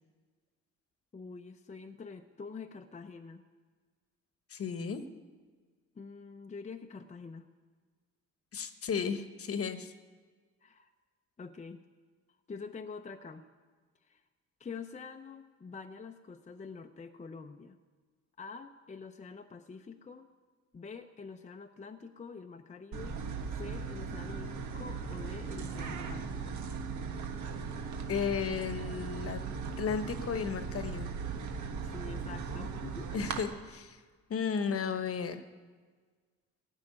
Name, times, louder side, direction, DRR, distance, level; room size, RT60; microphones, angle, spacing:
voice 1, 1.1-3.4 5.9-7.5 10.6-10.9 11.4-11.8 12.5-13.4 14.0-14.2 14.6-17.8 18.4-20.3 20.7-23.2 23.5-26.6 31.7-33.1, left 5 dB, 25° left, 6 dB, 0.7 m, -46 dB
voice 2, 4.5-5.0 8.5-9.9 28.1-29.4 29.8-31.1 33.1-34.0 34.3-35.4, left 6 dB, 50° left, 10 dB, 1.1 m, -34 dB
sound 1, 22.9-33.4, right 5 dB, 70° right, 1.5 m, -38 dB
15.0 x 6.4 x 9.7 m, 1.5 s
cardioid pair, 90°, 30 cm